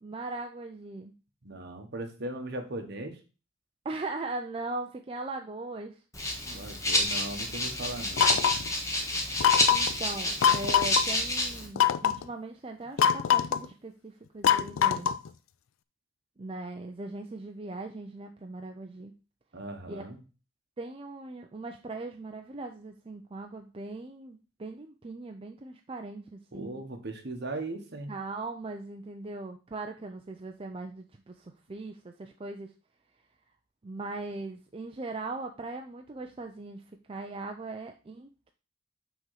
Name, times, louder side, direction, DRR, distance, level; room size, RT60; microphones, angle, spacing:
voice 1, 0.0-1.1 3.8-6.0 9.7-15.1 16.4-19.1 19.9-20.1 20.8-26.8 28.1-32.7 33.8-36.8 37.1-38.5, right 2 dB, 25° right, 4 dB, 0.4 m, -39 dB
voice 2, 1.4-3.2 6.4-8.4 19.5-20.2 26.5-28.1, right 2 dB, 55° right, 5 dB, 1.3 m, -38 dB
Rattle (instrument), 6.1-11.7, left 1 dB, 15° left, 1.4 m, -29 dB
sound 1, 8.2-8.7 9.4-9.9 10.4-11.0 11.8-12.2 13.0-13.7 14.4-15.3, left 8 dB, 85° left, 0.4 m, -23 dB
6.0 x 3.7 x 5.6 m, 0.34 s
head